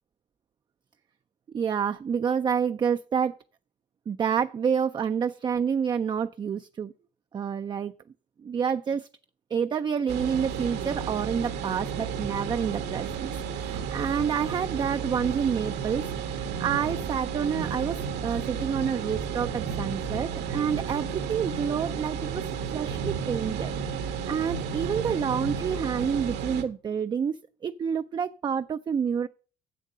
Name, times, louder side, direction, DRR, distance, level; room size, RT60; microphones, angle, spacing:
voice 1, 1.5-3.4 4.1-6.9 7.3-7.9 8.4-9.1 9.5-23.7 24.3-27.4 27.6-29.3, right 7 dB, 25° right, 0.3 m, -28 dB
sound 1, 10.1-26.6, right 6 dB, 80° right, 1.3 m, -32 dB
7.6 x 7.2 x 6.5 m
cardioid pair, 110°, 17 cm